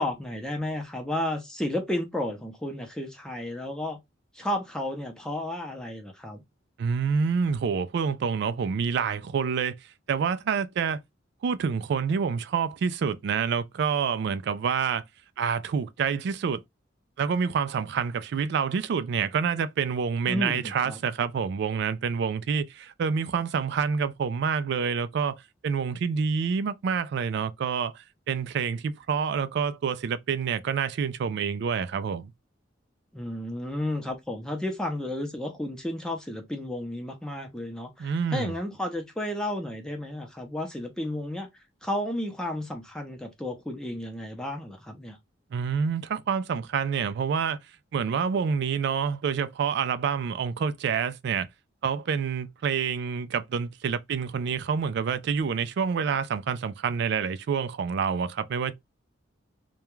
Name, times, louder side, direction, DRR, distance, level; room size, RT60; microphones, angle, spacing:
voice 1, 0.0-4.0 4.4-6.4 20.3-21.0 33.1-41.5 41.8-45.2, left 1 dB, 5° left, 0.5 m, -32 dB
voice 2, 6.8-9.7 10.1-11.0 11.4-15.0 15.4-16.6 17.2-32.3 38.0-38.5 45.5-47.6 47.9-51.5 51.8-58.7, right 6 dB, 60° right, 0.3 m, -27 dB
2.3 x 2.2 x 2.9 m
head